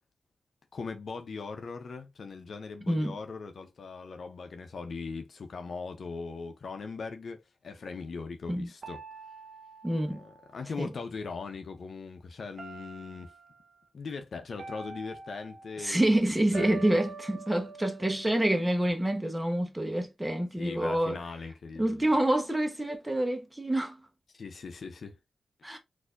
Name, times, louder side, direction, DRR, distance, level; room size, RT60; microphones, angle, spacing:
voice 1, 0.7-9.0 10.1-13.3 13.9-16.8 20.6-22.0 24.3-25.2, left 4 dB, 70° left, 0.7 m, -40 dB
sound 1, 8.8-11.2 12.6-13.6 14.6-15.9 16.5-18.9, right 4 dB, 65° right, 0.8 m, -46 dB
voice 2, 9.8-10.2 10.8-10.9 15.8-21.2 21.8-24.0 25.6-25.8, right 1 dB, 15° right, 1.1 m, -27 dB
4.0 x 2.7 x 2.5 m
cardioid pair, 45°, 0 cm